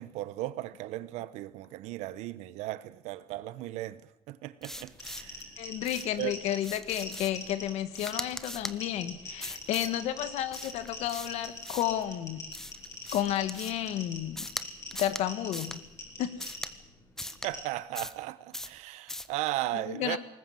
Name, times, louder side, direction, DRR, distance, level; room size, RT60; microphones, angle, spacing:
voice 1, 0.0-4.0 4.3-5.6 6.2-6.4 17.4-20.2, right 16 dB, 90° right, 1.1 m, -36 dB
sound 1, 4.6-5.4 5.8-6.2 6.6-7.5 7.9-8.8 9.4-10.0 10.5-12.0 12.5-13.9 14.4-14.6 14.9-15.2 15.5-15.8 16.4-16.7 17.2-17.5 17.9-18.2 18.5-18.8 19.1-19.3, left 1 dB, 5° left, 0.9 m, -40 dB
sound 2, 4.8-17.6, left 2 dB, 25° left, 6.0 m, -44 dB
voice 2, 5.6-12.4 13.1-14.5 14.9-15.8 16.2-16.6 19.7-20.2, left 12 dB, 75° left, 1.7 m, -32 dB
20.5 x 19.0 x 7.8 m
cardioid pair, 130°, 11 cm